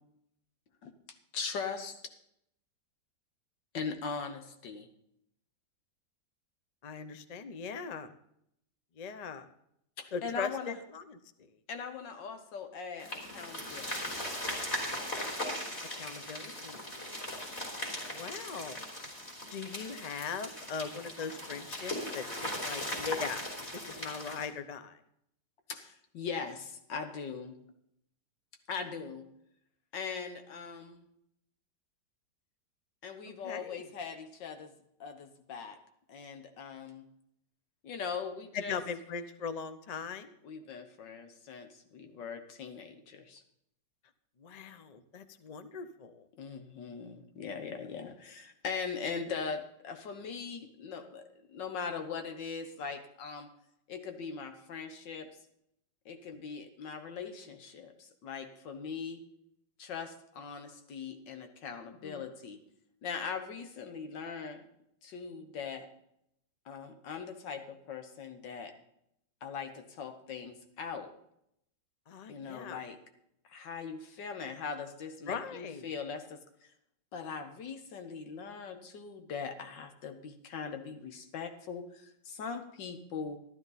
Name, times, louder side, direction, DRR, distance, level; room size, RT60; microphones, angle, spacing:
voice 1, 1.3-2.0 3.7-4.9 10.0-10.8 11.7-13.9 14.3-14.5 18.0-18.2 25.7-27.6 28.7-29.3 29.9-31.0 33.0-34.7 35.0-35.8 36.1-37.0 37.8-38.8 40.4-43.4 46.4-53.5 53.9-55.3 56.1-59.3 59.8-62.6 63.0-64.6 65.0-65.9 66.7-68.7 69.4-71.1 72.3-73.0 73.5-76.4 77.1-83.4, left 5 dB, 85° left, 6 dB, 1.8 m, -40 dB
voice 2, 6.8-8.1 9.0-9.5 10.1-11.5 16.0-16.9 18.1-18.8 19.5-23.4 23.7-25.0 33.3-33.9 38.5-40.4 44.4-46.3 62.0-62.3 72.1-72.8 75.3-75.9, left 6 dB, 70° left, 10 dB, 0.3 m, -40 dB
sound 1, 13.0-24.5, left 1 dB, 35° left, 3.8 m, -39 dB
13.0 x 12.0 x 4.0 m, 0.75 s
omnidirectional pair, 1.9 m